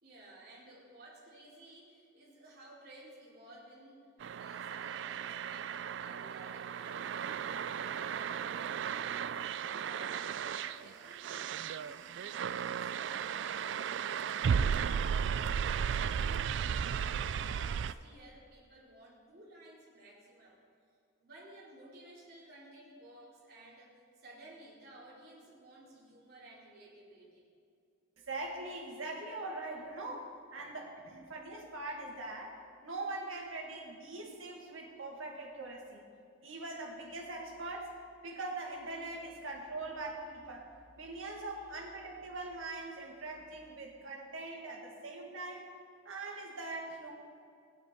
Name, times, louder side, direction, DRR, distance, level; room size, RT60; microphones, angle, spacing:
voice 1, 0.0-4.0 4.4-20.6 21.2-27.4, right 1 dB, 50° right, -5 dB, 3.2 m, -55 dB
sound 1, 4.2-17.9, right 7 dB, 65° right, 0.3 m, -35 dB
voice 2, 28.3-36.0 36.4-38.0 38.2-40.7 41.0-45.7 46.0-47.1, right 2 dB, 85° right, 0 dB, 2.0 m, -42 dB
15.5 x 10.0 x 4.5 m, 2.4 s
head